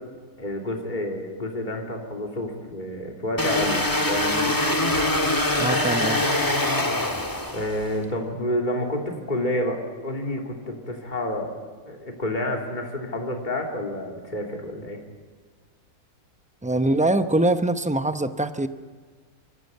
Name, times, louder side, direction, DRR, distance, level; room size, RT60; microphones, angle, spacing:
voice 1, 0.4-4.6 7.5-11.5 11.9-15.0, left 1 dB, 30° left, 1 dB, 3.0 m, -29 dB
sound 1, 3.4-7.9, left 1 dB, 15° left, 1.5 m, -23 dB
voice 2, 5.6-6.3 16.6-18.7, right 1 dB, 10° right, 9 dB, 0.3 m, -23 dB
27.0 x 15.0 x 9.2 m, 1.5 s
omnidirectional pair, 1.6 m